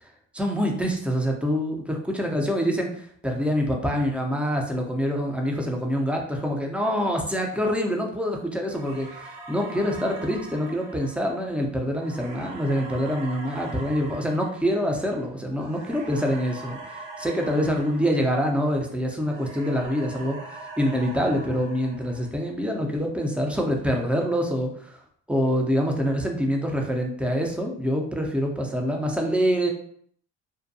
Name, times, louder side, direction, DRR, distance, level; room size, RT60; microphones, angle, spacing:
voice 1, 0.3-25.0 25.3-29.7, equal, 5° right, 1 dB, 0.5 m, -26 dB
sound 1, 8.7-18.9 19.2-22.6, right 3 dB, 75° right, 0.6 m, -42 dB
2.6 x 2.2 x 2.6 m, 0.62 s
supercardioid pair, 80°, 33 cm